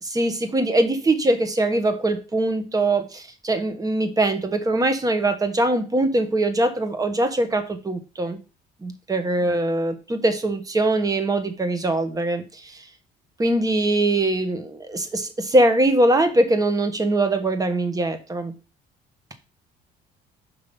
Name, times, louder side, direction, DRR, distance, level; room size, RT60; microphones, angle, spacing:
voice 1, 0.0-8.4 8.8-12.8 13.4-18.5, right 2 dB, 20° right, 9 dB, 1.3 m, -22 dB
5.7 x 5.4 x 5.4 m, 0.32 s
cardioid pair, 110°, 17 cm